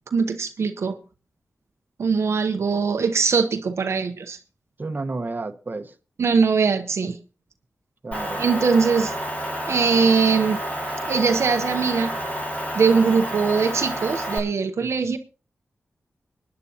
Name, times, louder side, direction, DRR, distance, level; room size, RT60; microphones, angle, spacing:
voice 1, 0.1-1.0 2.0-4.4 6.2-7.2 8.4-9.1 9.7-10.6 11.1-12.1 12.7-15.2, right 5 dB, 75° right, 0.8 m, -21 dB
voice 2, 4.8-6.0 8.0-8.4 15.0-15.2, right 3 dB, 40° right, 1.1 m, -31 dB
Motor vehicle (road) / Engine, 8.1-14.4, equal, 30° left, 6.0 m, -29 dB
24.0 x 9.8 x 2.8 m
cardioid pair, 55°, 5 cm